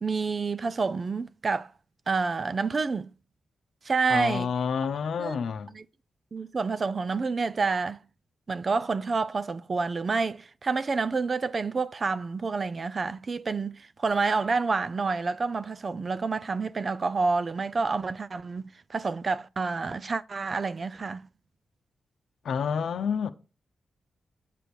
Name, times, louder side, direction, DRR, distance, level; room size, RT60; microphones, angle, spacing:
voice 1, 0.0-1.7 2.1-3.1 3.8-4.5 5.2-5.8 6.3-8.0 8.5-21.2, right 4 dB, 45° right, 0.4 m, -28 dB
voice 2, 4.1-5.7 22.4-23.3, left 6 dB, 75° left, 0.7 m, -29 dB
7.6 x 5.2 x 4.6 m
cardioid pair, 70°, 0 cm